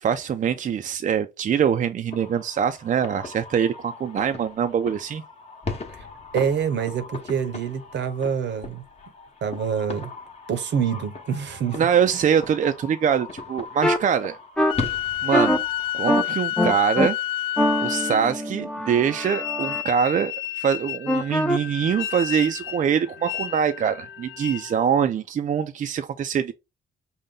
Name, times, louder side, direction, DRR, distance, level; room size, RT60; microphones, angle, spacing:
voice 1, 0.0-5.2 11.7-14.4 15.2-15.6 15.9-17.2 17.8-26.5, right 8 dB, 40° right, 0.4 m, -23 dB
sound 1, 2.1-16.1, left 3 dB, 30° left, 1.0 m, -38 dB
voice 2, 6.3-8.8 9.4-10.1 10.5-11.8, right 7 dB, 65° right, 0.8 m, -26 dB
sound 2, 13.8-14.0 14.6-14.7 15.3-15.6 16.1-16.2 16.6-17.1 17.6-19.8 21.1-21.6, equal, 5° left, 0.6 m, -23 dB
sound 3, 14.7-18.5 19.2-24.8, left 12 dB, 80° left, 0.5 m, -30 dB
5.3 x 2.1 x 3.6 m
cardioid pair, 90°, 20 cm